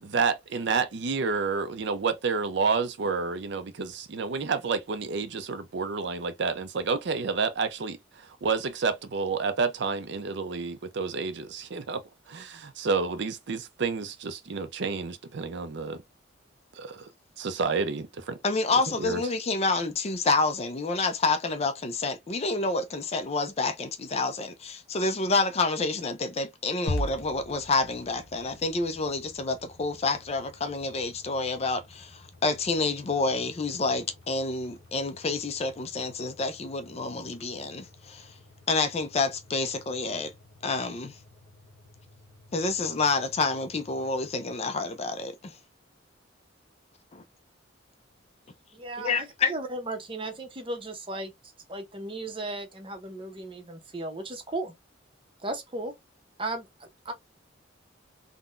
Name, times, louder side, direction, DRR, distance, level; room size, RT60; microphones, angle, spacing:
voice 1, 0.0-16.0 16.8-17.1 17.4-18.4 19.0-19.2, right 4 dB, 60° right, 0.5 m, -29 dB
voice 2, 18.4-38.3 38.7-40.3 40.6-41.1 42.5-45.3 47.1-47.2 49.0-49.5, left 3 dB, 35° left, 0.4 m, -28 dB
sound 1, 26.9-45.1, left 1 dB, 65° left, 0.8 m, -44 dB
voice 3, 48.7-51.3 51.7-54.7 55.4-55.9 56.4-57.1, right 2 dB, 25° right, 0.7 m, -36 dB
3.7 x 2.2 x 2.4 m
head